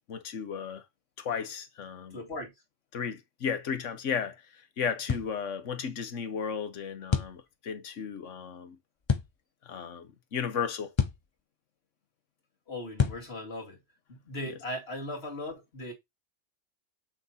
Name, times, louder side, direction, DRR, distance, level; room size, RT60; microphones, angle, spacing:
voice 1, 0.1-0.8 1.2-2.2 2.9-8.8 9.6-10.9 14.5-14.6, left 7 dB, 80° left, 1.4 m, -34 dB
voice 2, 2.1-2.5 12.7-13.8 14.1-15.9, left 1 dB, 55° left, 2.7 m, -38 dB
sound 1, 5.1-5.3 7.1-7.4 9.1-9.3 11.0-11.3 13.0-13.3, left 6 dB, 30° left, 0.5 m, -27 dB
7.7 x 6.0 x 2.8 m
omnidirectional pair, 1.3 m